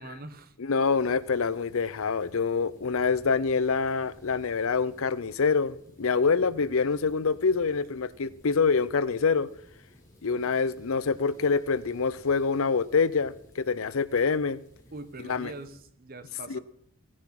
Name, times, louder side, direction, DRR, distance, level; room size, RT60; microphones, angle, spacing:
voice 1, 0.0-0.5 14.9-16.6, right 2 dB, 40° right, 1.1 m, -43 dB
voice 2, 0.6-9.5 10.2-14.6 15.2-15.5 16.5-16.6, left 5 dB, 65° left, 0.6 m, -26 dB
sound 1, 0.8-15.8, equal, 15° left, 3.4 m, -56 dB
15.5 x 9.5 x 5.9 m
head